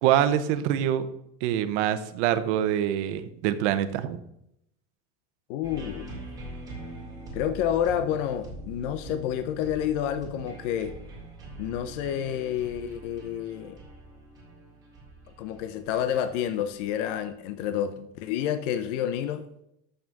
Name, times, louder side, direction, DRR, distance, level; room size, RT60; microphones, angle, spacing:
voice 1, 0.0-1.1 1.4-4.2, right 11 dB, 65° right, 10 dB, 0.9 m, -25 dB
voice 2, 5.5-6.1 7.3-11.0 11.6-13.8 15.4-19.5, left 10 dB, 65° left, 10 dB, 0.8 m, -29 dB
sound 1, 5.6-17.4, right 2 dB, 10° right, 2.7 m, -43 dB
6.9 x 6.2 x 7.0 m, 0.77 s
cardioid pair, 175°, 38 cm